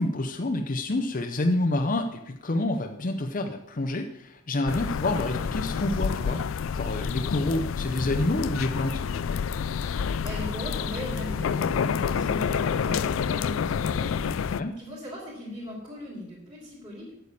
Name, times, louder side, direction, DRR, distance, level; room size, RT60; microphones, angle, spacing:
voice 1, 0.0-9.0 14.6-14.8, left 2 dB, 40° left, 4 dB, 0.7 m, -28 dB
outside general noise, 4.7-14.6, left 6 dB, 75° left, 0.4 m, -28 dB
voice 2, 9.8-17.1, equal, 25° right, -6 dB, 3.3 m, -39 dB
8.4 x 6.8 x 8.5 m, 0.81 s
head